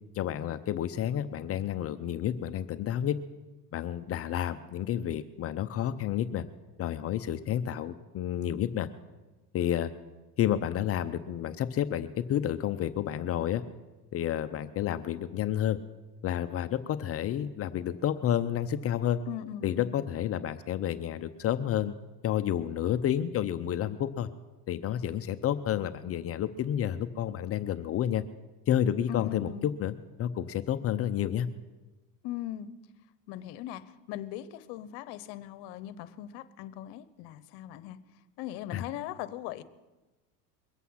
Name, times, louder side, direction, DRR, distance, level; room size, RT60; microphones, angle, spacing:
voice 1, 0.1-3.2 3.7-6.5 6.8-8.9 9.5-9.9 10.4-13.6 14.1-15.8 16.2-19.2 19.6-21.9 22.2-24.3 24.7-28.2 28.7-29.9 30.2-31.5 38.7-38.8, left 10 dB, 30° left, 10 dB, 0.5 m, -30 dB
voice 2, 19.3-20.0 29.1-29.7 32.2-32.7 33.3-38.0 38.4-39.6, left 12 dB, 55° left, 15 dB, 1.0 m, -39 dB
22.5 x 8.3 x 5.7 m, 1.1 s
supercardioid pair, 115°, 48 cm